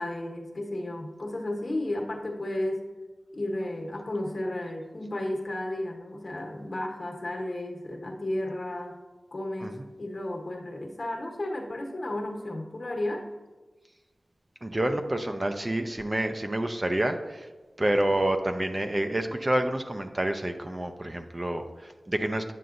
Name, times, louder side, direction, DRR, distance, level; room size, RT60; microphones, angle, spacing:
voice 1, 0.0-2.8 3.3-8.9 9.3-13.2, left 1 dB, 55° left, 1 dB, 1.2 m, -33 dB
voice 2, 14.6-17.5 17.8-22.5, right 1 dB, 25° right, 5 dB, 0.5 m, -28 dB
9.3 x 6.8 x 2.5 m, 1.3 s
wide cardioid pair, 90°, 0 cm